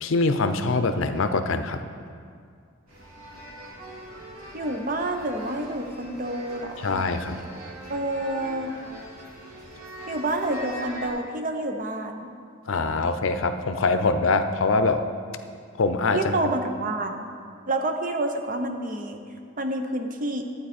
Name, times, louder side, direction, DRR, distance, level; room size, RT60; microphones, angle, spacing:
voice 1, 0.0-1.8 6.8-7.4 12.7-15.0 15.8-16.3, left 3 dB, 70° left, 9 dB, 0.6 m, -23 dB
sound 1, 2.9-11.1, right 1 dB, 85° right, 3.1 m, -41 dB
voice 2, 4.5-7.0 7.9-8.7 10.1-12.3 16.1-17.3 17.7-19.2 19.6-20.4, right 2 dB, 40° right, 5 dB, 0.8 m, -28 dB
11.5 x 8.9 x 4.3 m, 2.2 s
head